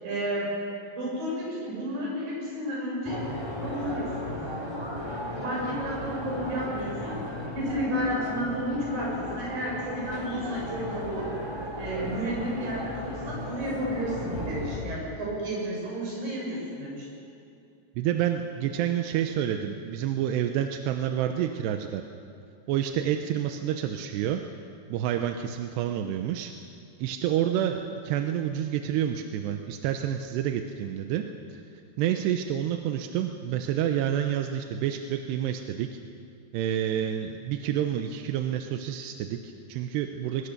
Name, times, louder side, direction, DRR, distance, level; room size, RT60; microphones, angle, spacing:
voice 1, 0.0-0.5 0.9-3.2 3.6-4.4 5.4-7.2 7.5-11.3 11.8-17.1, equal, 55° right, -4 dB, 8.8 m, -32 dB
sound 1, 3.0-14.8, equal, 5° right, 3.4 m, -35 dB
voice 2, 18.0-22.0 22.7-24.4 24.9-26.5 27.0-31.2 31.5-31.6 32.0-36.0 36.5-40.5, right 10 dB, 85° right, 6 dB, 2.9 m, -28 dB
22.5 x 21.5 x 6.8 m, 2.5 s
omnidirectional pair, 4.9 m